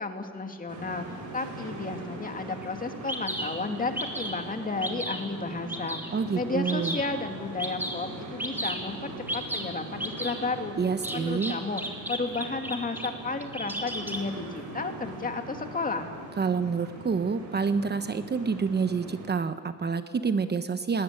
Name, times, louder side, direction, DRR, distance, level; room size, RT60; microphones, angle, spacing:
voice 1, 0.0-10.8 11.1-11.8 12.1-16.1, left 3 dB, 30° left, 5 dB, 2.5 m, -33 dB
sound 1, 0.7-19.3, right 1 dB, 75° right, 7.8 m, -41 dB
Bird vocalization bird call bird song, 2.6-2.7 3.1-3.5 4.0-4.4 4.8-5.2 5.7-6.1 6.6-7.1 7.6-8.0 8.4-8.8 9.3-9.6 10.0-10.3 11.0-13.1 13.4-14.2, right 1 dB, 5° right, 3.4 m, -33 dB
voice 2, 6.1-7.0 10.8-11.6 16.4-21.0, right 5 dB, 35° right, 10 dB, 1.1 m, -28 dB
20.0 x 19.5 x 9.2 m, 2.3 s
cardioid pair, 90°, 30 cm